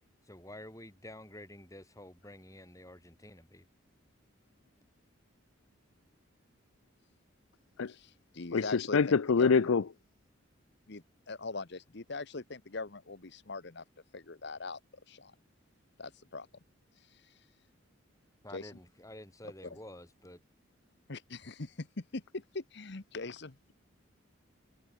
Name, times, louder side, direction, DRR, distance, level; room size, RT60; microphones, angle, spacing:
voice 1, 0.3-3.6 18.4-20.4, left 1 dB, 15° left, 7.7 m, -49 dB
voice 2, 7.9-9.0 9.4-9.7 10.9-13.8 14.1-14.8 15.1-15.3 16.0-16.5 17.1-17.2 18.5-18.8 19.6-19.8 21.1-23.6, left 3 dB, 60° left, 1.1 m, -41 dB
voice 3, 8.5-9.8, left 5 dB, 85° left, 0.5 m, -25 dB
head